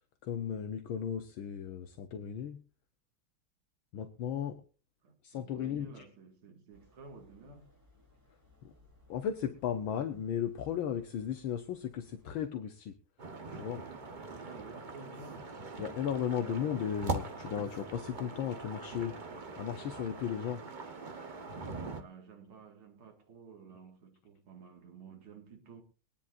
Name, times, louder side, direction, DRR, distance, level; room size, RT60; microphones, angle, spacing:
voice 1, 0.2-2.6 3.9-4.6 5.2-6.1 8.6-8.7 9.1-13.0 13.5-13.9 15.8-20.6, left 8 dB, 70° left, 1.6 m, -36 dB
voice 2, 5.0-7.7 14.3-16.0 21.9-25.8, right 5 dB, 75° right, 2.8 m, -53 dB
sound 1, 6.7-12.4, left 1 dB, 10° right, 5.0 m, -65 dB
sound 2, 13.2-22.0, right 3 dB, 40° right, 0.7 m, -42 dB
23.0 x 10.5 x 2.5 m
omnidirectional pair, 2.4 m